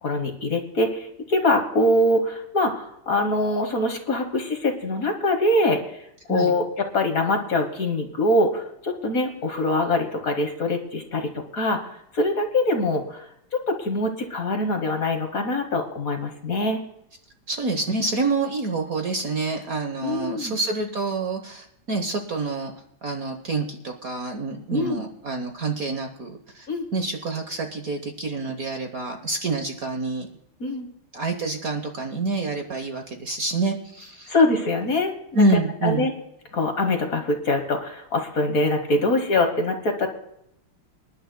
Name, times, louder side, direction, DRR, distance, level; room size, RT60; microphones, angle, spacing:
voice 1, 0.0-6.6 6.9-13.2 13.5-16.8 20.0-20.6 24.7-25.0 26.7-26.9 30.6-30.9 34.3-35.4 35.8-36.1 36.5-40.1, left 2 dB, 45° left, 5 dB, 1.5 m, -23 dB
voice 2, 17.5-22.7 23.0-30.3 31.1-34.3 35.3-36.1, right 3 dB, 50° right, 4 dB, 1.2 m, -27 dB
26.0 x 11.0 x 2.2 m, 0.79 s
omnidirectional pair, 2.4 m